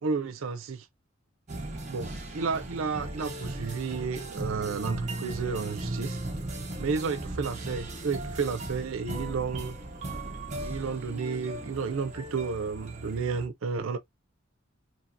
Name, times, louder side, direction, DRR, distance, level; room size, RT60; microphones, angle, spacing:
voice 1, 0.0-0.9 1.9-6.2 6.8-9.7 10.6-14.0, right 5 dB, 75° right, 0.5 m, -32 dB
sound 1, 1.5-13.5, right 2 dB, 35° right, 0.7 m, -37 dB
2.8 x 2.7 x 2.3 m
head